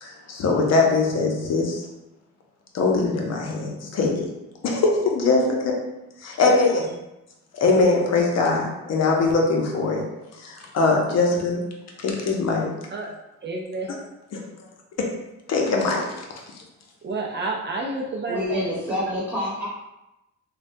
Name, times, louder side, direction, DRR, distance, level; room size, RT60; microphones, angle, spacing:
voice 1, 0.0-1.9 2.7-4.3 4.6-5.8 6.2-6.9 7.5-10.0 10.3-11.6 12.0-12.7 14.3-14.4 15.0-15.1 15.5-16.2, left 3 dB, 60° left, 0 dB, 0.7 m, -22 dB
voice 2, 13.4-14.0 17.0-18.6 19.5-19.6, right 3 dB, 35° right, 0 dB, 0.4 m, -30 dB
voice 3, 18.3-19.7, equal, 5° right, -9 dB, 1.4 m, -27 dB
3.2 x 2.2 x 2.6 m, 0.93 s
cardioid pair, 90°, 30 cm